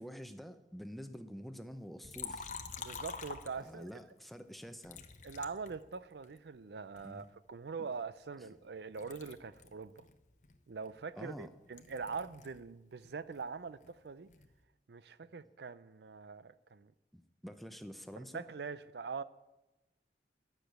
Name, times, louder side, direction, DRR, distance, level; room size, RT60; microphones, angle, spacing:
voice 1, 0.0-2.5 3.6-5.0 7.0-7.2 7.8-7.9 11.2-11.5 17.1-18.5, equal, ahead, 0.6 m, -47 dB
Liquid, 2.0-4.0 4.8-6.4 7.0-8.7 9.0-12.6 12.9-14.6, left 5 dB, 45° left, 0.9 m, -48 dB
voice 2, 2.8-3.9 5.2-10.1 10.7-14.3 14.9-16.9 18.2-19.2, right 5 dB, 70° right, 0.5 m, -43 dB
12.0 x 6.6 x 9.2 m
head